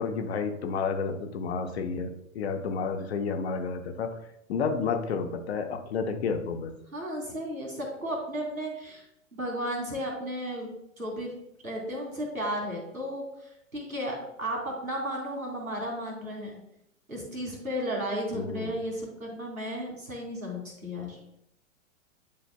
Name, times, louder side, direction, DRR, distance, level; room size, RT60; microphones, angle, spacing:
voice 1, 0.0-4.1 4.5-6.7 18.3-18.8, left 5 dB, 50° left, 6 dB, 0.9 m, -31 dB
voice 2, 6.9-9.0 9.3-10.7 11.0-11.3 11.6-16.6 17.1-21.2, equal, 85° right, -1 dB, 2.7 m, -34 dB
10.5 x 4.9 x 2.2 m, 0.79 s
figure-of-eight pair, 105°, 41 cm